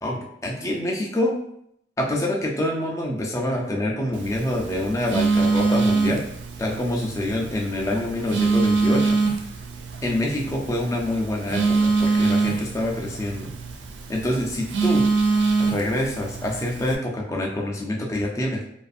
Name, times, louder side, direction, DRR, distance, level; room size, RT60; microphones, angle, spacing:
voice 1, 0.0-1.3 2.0-6.3 6.6-9.2 10.0-13.5 14.1-15.1 15.6-18.6, left 1 dB, 15° left, -1 dB, 0.4 m, -26 dB
Telephone, 4.1-16.9, right 4 dB, 80° right, 0.4 m, -24 dB
2.5 x 2.4 x 2.4 m, 0.71 s
head